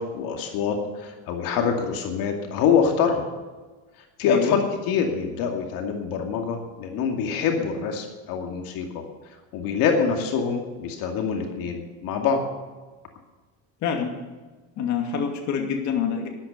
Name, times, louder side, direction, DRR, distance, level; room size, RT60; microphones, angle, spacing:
voice 1, 0.0-3.3 4.2-9.0 9.5-12.4, left 6 dB, 70° left, 3 dB, 2.5 m, -25 dB
voice 2, 13.8-14.1 14.8-16.3, left 7 dB, 55° left, 2 dB, 2.6 m, -26 dB
13.5 x 11.5 x 6.7 m, 1.3 s
cardioid pair, 150°, 35 cm